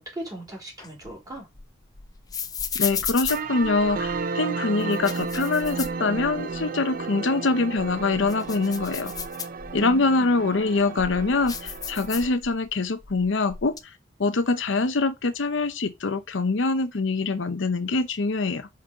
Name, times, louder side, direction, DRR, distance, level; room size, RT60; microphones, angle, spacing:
voice 1, 0.0-1.5 9.8-10.3, right 1 dB, 20° right, 3.2 m, -38 dB
sound 1, 0.8-4.2 4.8-6.6 7.0-7.1 7.6-10.0 10.6-12.7 13.0-13.8, left 6 dB, 20° left, 0.6 m, -34 dB
voice 2, 2.8-9.1 9.7-13.7 14.2-18.7, left 3 dB, 70° left, 0.7 m, -24 dB
sound 2, 3.3-12.3, right 4 dB, 45° right, 0.5 m, -33 dB
5.3 x 4.2 x 4.9 m
head